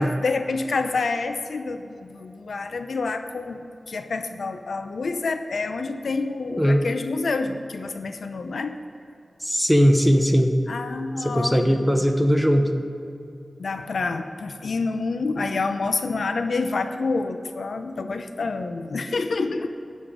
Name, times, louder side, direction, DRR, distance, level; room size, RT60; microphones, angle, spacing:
voice 1, 0.0-8.8 10.7-12.0 13.6-19.7, left 3 dB, 90° left, 8 dB, 0.6 m, -28 dB
voice 2, 9.4-10.5 11.2-12.7, equal, ahead, 6 dB, 0.9 m, -19 dB
13.0 x 9.5 x 5.0 m, 2.6 s
wide cardioid pair, 95°, 0 cm